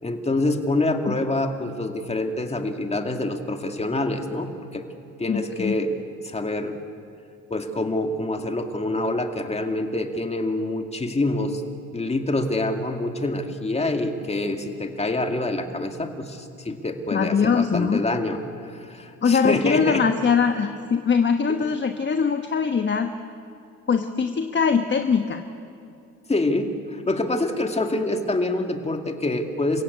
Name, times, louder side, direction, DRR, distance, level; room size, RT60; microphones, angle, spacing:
voice 1, 0.0-4.8 5.2-6.8 7.5-11.6 11.9-18.4 18.7-20.0 26.3-29.8, left 2 dB, 20° left, 5 dB, 2.3 m, -26 dB
voice 2, 5.3-5.7 17.1-18.0 19.2-23.1 23.9-25.4, left 6 dB, 40° left, 6 dB, 1.3 m, -22 dB
28.5 x 16.5 x 8.6 m, 2.5 s
cardioid pair, 90°, 30 cm